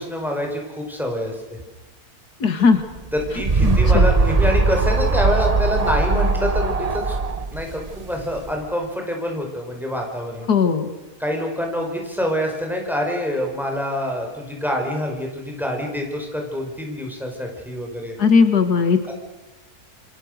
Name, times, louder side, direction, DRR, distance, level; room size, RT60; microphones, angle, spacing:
voice 1, 0.0-1.4 3.1-7.2 7.5-10.5 11.2-18.1 19.1-19.2, equal, ahead, 1 dB, 4.8 m, -26 dB
voice 2, 2.4-2.8 3.6-4.1 10.5-10.9 18.2-19.1, left 5 dB, 80° left, 9 dB, 2.3 m, -17 dB
sound 1, 3.0-8.6, right 3 dB, 30° right, 0.9 m, -20 dB
27.0 x 25.5 x 6.6 m, 1.1 s
omnidirectional pair, 1.7 m